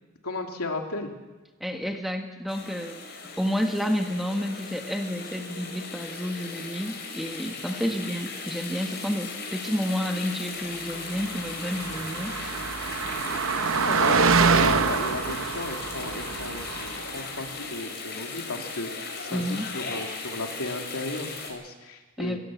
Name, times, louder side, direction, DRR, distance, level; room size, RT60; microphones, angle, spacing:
voice 1, 0.2-1.1 7.8-8.0 13.7-22.4, left 2 dB, 80° left, 3 dB, 2.7 m, -34 dB
voice 2, 1.6-3.0 3.4-12.3 13.4-13.6 19.3-19.7 22.2-22.4, equal, ahead, 4 dB, 1.5 m, -30 dB
sound 1, 2.5-21.5, left 4 dB, 50° left, 4.6 m, -37 dB
Car passing by, 11.2-17.2, right 5 dB, 60° right, 0.8 m, -25 dB
20.0 x 16.0 x 8.5 m, 1.2 s
head